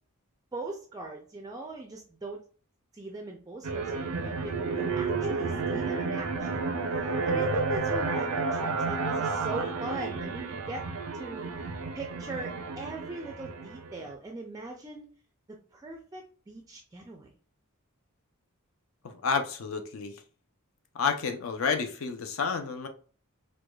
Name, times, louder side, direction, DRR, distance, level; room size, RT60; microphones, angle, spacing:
voice 1, 0.5-2.4 2.9-6.7 7.2-10.8 11.1-11.5 11.9-15.0 15.5-17.3, right 2 dB, 15° right, 2 dB, 0.3 m, -40 dB
sound 1, 3.6-14.1, right 4 dB, 80° right, 0.5 m, -31 dB
voice 2, 19.0-20.2 20.9-22.9, left 5 dB, 65° left, 6 dB, 0.5 m, -30 dB
4.7 x 2.2 x 2.2 m, 0.40 s
head